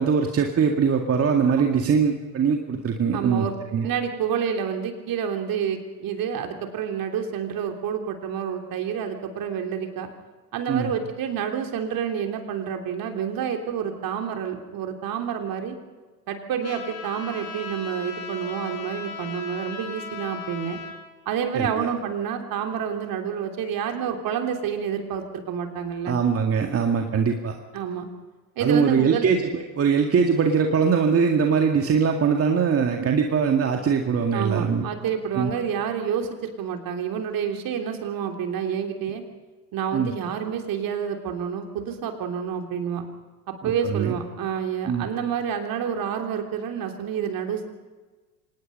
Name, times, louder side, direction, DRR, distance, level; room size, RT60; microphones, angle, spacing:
voice 1, 0.0-3.9 10.7-10.9 21.5-21.9 26.1-27.6 28.6-34.9 35.4-35.5 39.9-40.1 43.6-44.1 44.9-45.1, right 6 dB, 30° right, 3 dB, 2.1 m, -22 dB
voice 2, 3.1-3.5 3.8-10.1 10.5-15.8 16.3-20.8 21.3-26.2 27.7-28.1 28.6-29.3 34.3-39.2 39.7-43.0 43.6-47.6, right 8 dB, 45° right, 4 dB, 3.5 m, -28 dB
Trumpet, 16.6-20.9, left 5 dB, 70° left, 5.1 m, -37 dB
25.5 x 19.5 x 5.5 m, 1.3 s
figure-of-eight pair, 75°, 48 cm